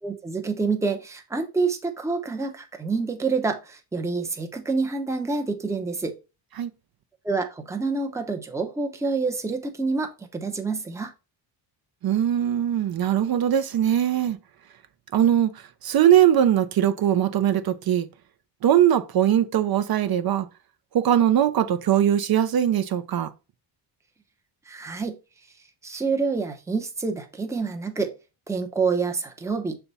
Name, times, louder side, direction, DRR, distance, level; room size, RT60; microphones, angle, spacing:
voice 1, 0.0-6.2 7.2-11.1 24.7-25.1 25.8-28.1 28.5-29.8, right 4 dB, 5° right, 0.7 m, -27 dB
voice 2, 12.0-14.4 15.1-18.1 18.6-20.5 20.9-23.3, right 10 dB, 50° right, 0.6 m, -21 dB
7.0 x 3.4 x 4.1 m
cardioid pair, 155°, 46 cm